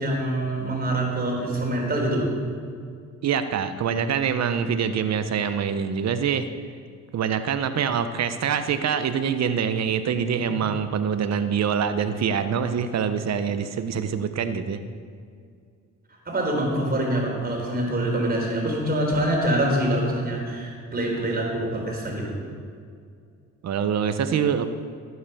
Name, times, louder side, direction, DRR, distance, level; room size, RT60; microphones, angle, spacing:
voice 1, 0.0-2.3 10.4-10.6 16.3-22.4, right 1 dB, 30° right, 0 dB, 4.2 m, -25 dB
voice 2, 3.2-6.5 7.1-14.8 23.6-24.7, right 7 dB, 60° right, 10 dB, 1.0 m, -25 dB
15.0 x 9.5 x 7.0 m, 2.2 s
cardioid pair, 90°, 30 cm